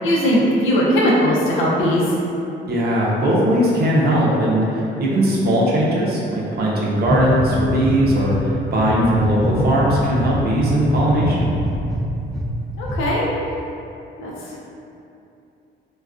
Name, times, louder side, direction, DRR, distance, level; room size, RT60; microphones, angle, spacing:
voice 1, 0.0-2.0 12.8-13.2 14.2-14.3, equal, 85° left, -5 dB, 0.6 m, -18 dB
voice 2, 2.7-11.5, equal, 55° right, -5 dB, 0.6 m, -19 dB
sound 1, 7.0-8.4 8.8-12.5 12.8-13.0, equal, ahead, 0.3 m, -23 dB
2.4 x 2.2 x 2.3 m, 2.7 s
cardioid pair, 90°, 20 cm